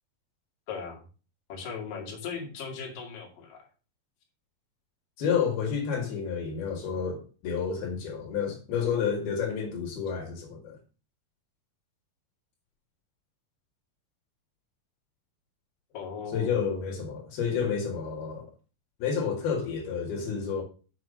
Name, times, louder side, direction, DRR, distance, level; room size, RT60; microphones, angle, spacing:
voice 1, 0.7-1.0 1.5-3.7 15.9-16.6, left 5 dB, 65° left, 3.9 m, -38 dB
voice 2, 5.2-10.8 16.3-18.5 19.0-20.6, left 6 dB, 85° left, 4.0 m, -30 dB
7.4 x 6.2 x 6.7 m
omnidirectional pair, 4.3 m